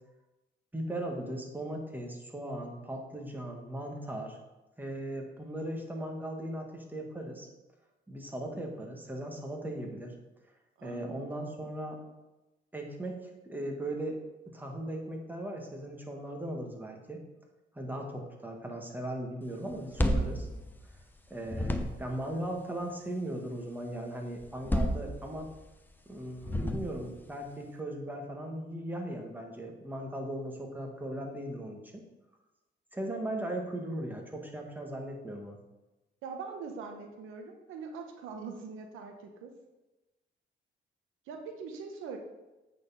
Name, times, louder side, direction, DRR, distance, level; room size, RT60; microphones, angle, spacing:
voice 1, 0.7-4.4 4.8-7.5 8.1-10.1 10.8-12.0 12.7-14.2 14.5-17.2 17.7-20.5 21.3-25.5 26.0-32.0 32.9-35.6, right 1 dB, 10° right, 1 dB, 1.5 m, -38 dB
voice 2, 10.8-11.3 36.2-39.5 41.3-42.2, right 5 dB, 90° right, 4 dB, 1.0 m, -42 dB
sound 1, 19.7-21.2 21.5-22.2 24.4-25.6 26.4-27.2, equal, 10° left, 0.8 m, -31 dB
8.3 x 4.3 x 5.6 m, 1.1 s
cardioid pair, 90°, 20 cm